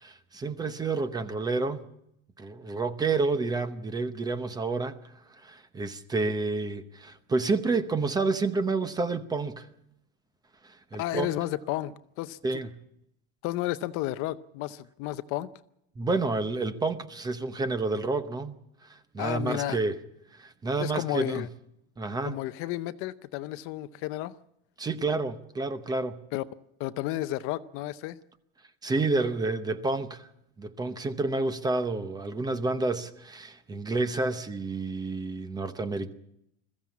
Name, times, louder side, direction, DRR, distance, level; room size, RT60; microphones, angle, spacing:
voice 1, 0.0-1.8 2.4-5.0 5.4-9.7 10.6-11.3 12.4-12.7 16.0-18.5 18.8-20.0 20.3-21.5 22.0-22.4 24.8-26.2 28.8-30.3 30.6-36.1, right 3 dB, 10° right, 0.8 m, -29 dB
voice 2, 11.0-12.6 13.4-15.5 19.2-19.8 20.8-21.5 22.3-24.3 26.3-26.4 26.8-28.2, left 15 dB, 40° left, 0.7 m, -32 dB
21.5 x 15.0 x 8.4 m
cardioid pair, 170°, 34 cm